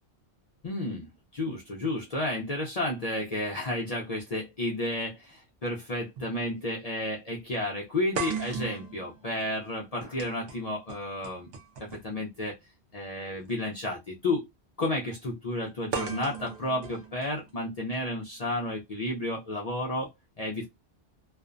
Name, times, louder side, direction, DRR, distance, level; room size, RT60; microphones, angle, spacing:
voice 1, 0.6-11.5 11.8-12.6 12.9-14.4 14.8-20.1 20.4-20.7, left 1 dB, 50° left, 0.5 m, -32 dB
sound 1, 6.2-6.3 6.7-6.8 8.2-12.2 13.4-13.5 15.9-17.9, right 6 dB, 65° right, 0.8 m, -38 dB
2.5 x 2.1 x 2.4 m
omnidirectional pair, 1.1 m